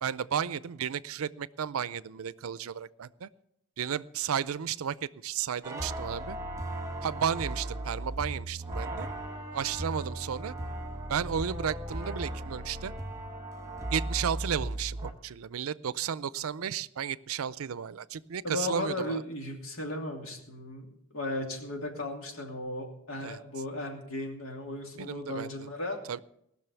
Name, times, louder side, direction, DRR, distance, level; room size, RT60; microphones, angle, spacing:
voice 1, 0.0-3.3 3.8-6.4 7.0-9.1 9.5-10.5 11.1-12.9 13.9-19.2 23.2-23.4 24.9-25.5 26.1-26.2, right 8 dB, 90° right, 19 dB, 0.5 m, -33 dB
sound 1, 5.6-15.1, right 1 dB, 15° right, 1.2 m, -37 dB
voice 2, 18.4-26.0, left 1 dB, 80° left, 2 dB, 2.7 m, -36 dB
18.5 x 6.4 x 6.9 m, 0.76 s
head